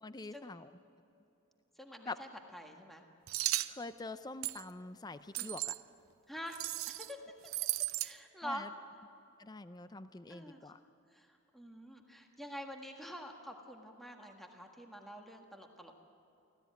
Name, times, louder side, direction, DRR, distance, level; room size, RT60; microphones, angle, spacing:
voice 1, 0.0-0.7 2.1-2.2 3.7-5.7 8.4-8.7 9.4-10.8, left 3 dB, 20° left, 12 dB, 0.5 m, -45 dB
voice 2, 1.8-3.0 5.4-5.5 6.3-6.6 6.9-7.2 8.0-8.7 10.3-10.7 11.1-16.0, equal, ahead, 2 dB, 1.6 m, -47 dB
sound 1, 3.3-3.7 4.4-4.6 5.3-5.8 6.5-7.1 7.4-8.1, right 16 dB, 85° right, 0.6 m, -35 dB
25.0 x 16.5 x 9.4 m, 2.9 s
head